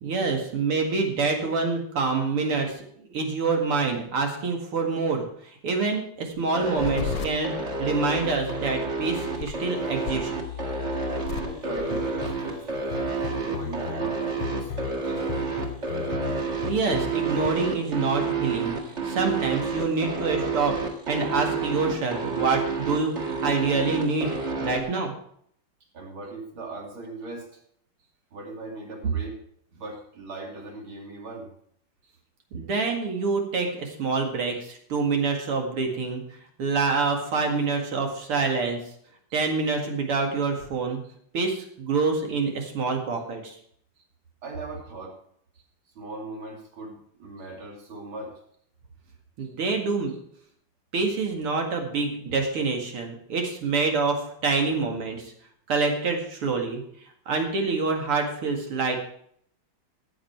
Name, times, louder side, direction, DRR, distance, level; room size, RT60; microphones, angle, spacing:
voice 1, 0.0-7.5 7.8-10.3 16.6-20.8 21.1-25.1 32.5-36.2 36.6-38.8 39.3-41.0 41.3-43.6 49.4-50.2 50.9-55.3 55.7-56.8 57.3-59.0, right 4 dB, 90° right, 2 dB, 3.0 m, -26 dB
sound 1, 6.5-24.8, right 4 dB, 35° right, 2.1 m, -29 dB
sound 2, 6.8-17.5, left 8 dB, 65° left, 1.3 m, -36 dB
voice 2, 11.4-12.7 13.2-14.2 14.5-14.7 15.0-15.7 25.9-27.6 28.3-29.4 29.7-31.5 44.4-45.2 46.0-48.4, right 2 dB, 65° right, 1 dB, 3.4 m, -39 dB
14.5 x 8.8 x 4.6 m, 0.66 s
omnidirectional pair, 2.4 m